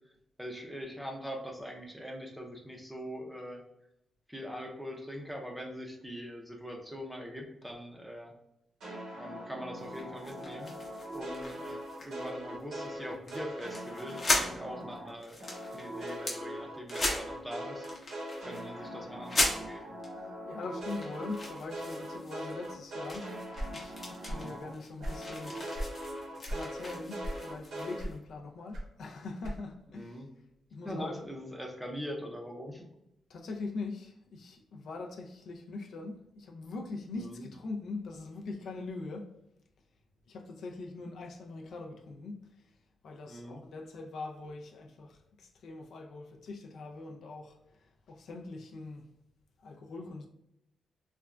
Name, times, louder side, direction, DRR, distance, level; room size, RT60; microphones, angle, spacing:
voice 1, 0.4-3.6 4.3-8.3 9.2-10.7 11.1-15.4 15.7-17.9 18.4-19.9 24.3-24.6 29.9-30.3 30.8-32.9 37.2-37.5 43.3-43.6, equal, ahead, 0.5 m, -42 dB
sound 1, 8.8-15.1 15.4-24.7 25.0-28.0, equal, 85° right, 1.0 m, -41 dB
sound 2, 9.8-12.3 12.6-12.9 13.3-13.4 13.7-14.5 15.0-16.4 16.9-17.5 17.8-18.7 19.2-20.1 20.6-22.7 23.0-28.2, left 1 dB, 35° left, 0.7 m, -37 dB
voice 2, 20.2-23.4 23.7-24.0 24.2-25.6 26.4-30.2 30.7-31.3 33.3-39.4 40.3-42.7 43.0-49.1 49.6-50.3, left 3 dB, 70° left, 0.4 m, -42 dB
sound 3, 23.5-24.6 24.8-26.0 26.4-26.7 27.2-27.6 28.0-29.9, right 1 dB, 60° right, 0.8 m, -38 dB
3.3 x 2.2 x 2.4 m
wide cardioid pair, 130°, 0 cm